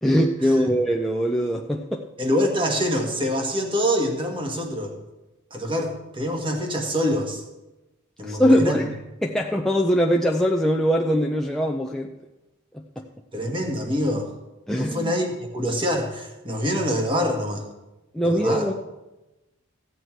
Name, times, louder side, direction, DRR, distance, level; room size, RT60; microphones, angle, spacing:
voice 1, 0.0-2.1 8.2-8.9 9.2-12.1 13.0-13.1 14.7-15.1 18.1-18.7, equal, ahead, -1 dB, 0.5 m, -22 dB
voice 2, 2.2-4.9 5.5-7.4 8.2-8.8 13.3-14.3 14.8-17.7 18.2-18.7, equal, 25° right, 3 dB, 1.5 m, -25 dB
15.5 x 8.2 x 4.6 m, 1.0 s
head